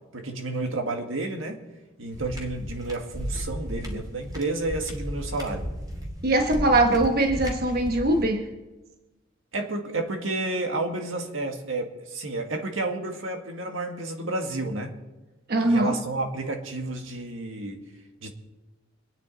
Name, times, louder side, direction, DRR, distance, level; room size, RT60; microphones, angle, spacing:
voice 1, 0.1-1.6 2.0-5.7 9.5-14.9 15.6-17.8 18.2-18.3, right 2 dB, 85° right, 3 dB, 1.9 m, -31 dB
sound 1, 2.1-8.3, equal, 20° right, 2.4 m, -35 dB
voice 2, 6.2-8.5 15.5-15.9, right 2 dB, 50° right, 4 dB, 1.2 m, -21 dB
26.0 x 9.6 x 4.1 m, 1.1 s
head